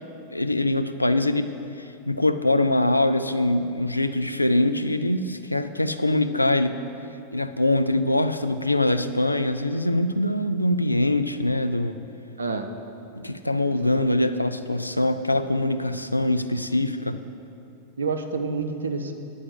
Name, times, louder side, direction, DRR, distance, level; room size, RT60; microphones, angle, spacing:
voice 1, 0.3-1.5 1.8-6.8 7.3-12.0 13.2-17.2, left 1 dB, 85° left, 9 dB, 0.3 m, -23 dB
voice 2, 13.7-14.2 18.0-19.1, right 4 dB, 70° right, 6 dB, 0.6 m, -29 dB
9.5 x 4.8 x 7.9 m, 2.6 s
figure-of-eight pair, 90°, 0 cm